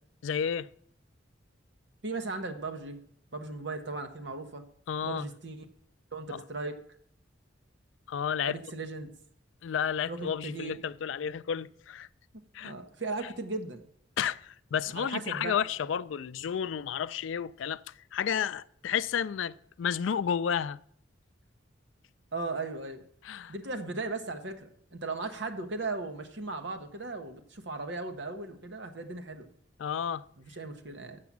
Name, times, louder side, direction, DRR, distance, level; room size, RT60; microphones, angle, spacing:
voice 1, 0.2-0.7 4.9-5.3 6.3-6.4 8.1-8.5 9.6-12.1 12.5-12.7 14.2-17.8 18.1-20.8 23.3-23.5 29.8-30.2, left 8 dB, 80° left, 0.3 m, -31 dB
voice 2, 2.0-3.0 3.3-4.6 5.0-5.7 6.1-6.8 8.4-9.1 10.1-10.8 12.6-13.8 14.9-15.6 22.3-23.0 23.5-29.5 30.4-31.2, right 3 dB, 65° right, 1.0 m, -37 dB
7.1 x 6.7 x 7.3 m
head